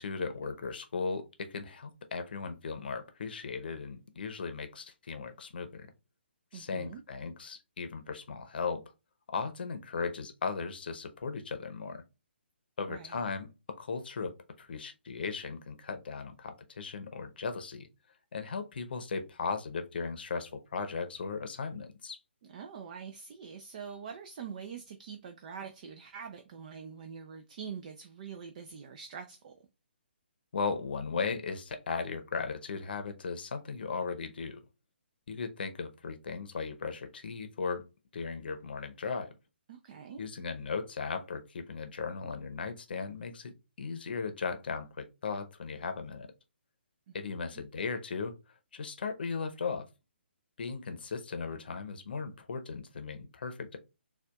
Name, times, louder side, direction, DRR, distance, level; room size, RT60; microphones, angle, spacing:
voice 1, 0.0-5.9 6.5-8.8 9.3-12.0 12.8-14.3 14.6-17.9 18.3-22.2 30.5-34.6 35.3-37.8 38.1-39.3 40.2-43.5 43.8-46.3 47.1-48.3 48.7-49.9 50.6-53.8, left 5 dB, 55° left, 0.7 m, -37 dB
voice 2, 6.5-7.0 12.9-13.3 22.5-29.5 39.7-40.3 47.1-47.2, right 7 dB, 40° right, 0.4 m, -44 dB
6.7 x 2.4 x 2.3 m
figure-of-eight pair, 135°, 6 cm